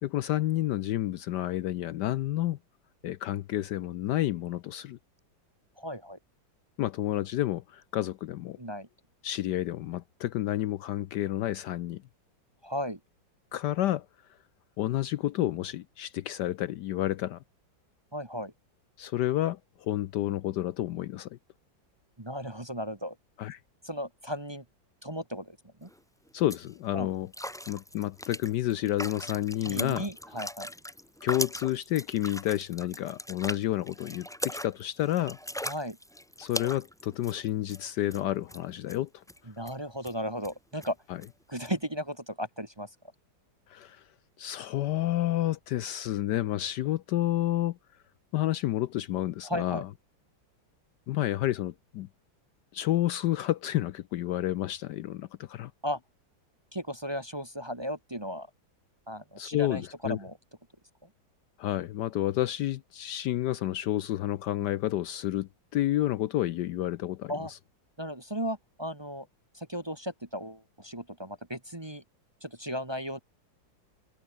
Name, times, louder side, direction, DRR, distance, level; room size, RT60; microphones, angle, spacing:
voice 1, 0.0-2.6 3.0-5.0 6.8-8.6 9.2-12.0 13.5-14.1 14.8-17.4 19.0-21.3 23.4-23.6 26.3-27.3 27.7-30.1 31.2-35.4 36.4-39.2 43.7-44.0 44.4-47.8 48.3-49.9 51.1-52.1 52.7-55.7 59.4-60.2 61.6-67.6, left 14 dB, 70° left, 1.1 m, -30 dB
voice 2, 5.8-6.2 8.6-8.9 12.6-13.0 18.1-18.5 22.2-23.2 23.8-24.6 25.0-25.9 26.9-27.1 29.7-30.7 35.6-36.0 39.5-41.0 41.5-42.9 49.4-49.8 55.8-56.0 56.7-58.5 59.1-60.4 67.3-67.5 68.0-69.3 69.5-72.0 72.4-73.2, equal, 15° right, 1.3 m, -35 dB
sound 1, 25.8-26.0 26.3-26.7 27.3-37.8 38.1-38.2 38.5-39.0 39.3-39.4 39.6-39.7 40.0-40.1 40.4-40.5 40.8-40.9 41.2-41.3 41.6-41.7, equal, 5° left, 0.7 m, -39 dB
omnidirectional pair, 2.1 m